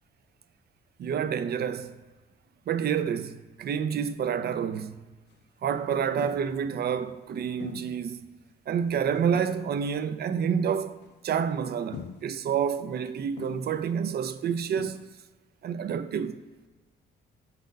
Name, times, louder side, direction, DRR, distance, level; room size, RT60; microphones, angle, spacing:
voice 1, 1.0-1.9 2.7-5.0 5.6-8.2 8.7-11.0 11.2-15.0 15.6-16.4, right 7 dB, 55° right, 0.5 m, -28 dB
sound 1, 5.3-5.4 6.2-6.6 7.6-8.0 8.4-8.5 9.1-9.7 10.6-11.2 11.9-12.4 13.4-13.8 14.4-14.5 14.8-15.2, left 8 dB, 60° left, 0.4 m, -43 dB
8.1 x 4.1 x 5.2 m
cardioid pair, 90°, 20 cm